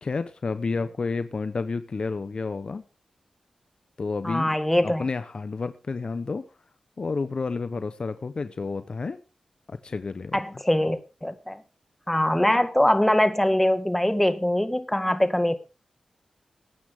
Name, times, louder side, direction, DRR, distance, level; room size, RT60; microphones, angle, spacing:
voice 1, 0.0-2.8 4.0-4.6 4.8-6.4 7.0-9.2 9.7-10.4, left 4 dB, 50° left, 1.0 m, -30 dB
voice 2, 4.2-5.1 10.3-11.6 12.1-15.5, left 1 dB, 10° left, 1.9 m, -23 dB
20.5 x 9.4 x 3.7 m
cardioid pair, 65°, 2 cm